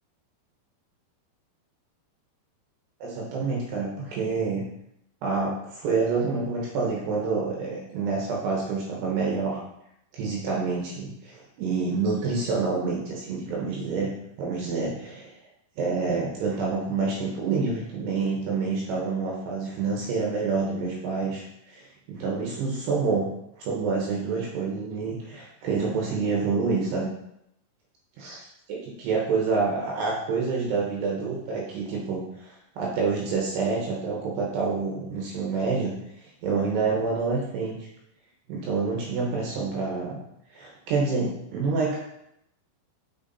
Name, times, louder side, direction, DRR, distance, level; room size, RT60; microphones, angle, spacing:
voice 1, 3.0-4.6 5.2-9.6 10.1-14.1 14.4-15.3 15.8-23.3 23.6-27.1 28.2-28.4 28.7-35.9 36.4-37.9 38.5-40.2 40.5-42.0, right 4 dB, 70° right, -3 dB, 3.0 m, -27 dB
6.8 x 6.2 x 4.2 m, 0.79 s
omnidirectional pair, 5.5 m